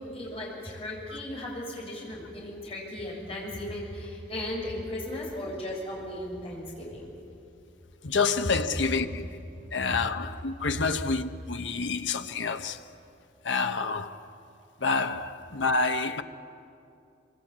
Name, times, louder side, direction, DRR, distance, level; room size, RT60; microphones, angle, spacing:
voice 1, 0.0-7.1 9.6-9.7, left 1 dB, 30° left, 6.9 m, -36 dB
voice 2, 8.0-9.2 9.7-12.8 13.4-14.3 14.8-16.2, left 4 dB, 80° left, 1.0 m, -28 dB
25.0 x 24.5 x 8.7 m
head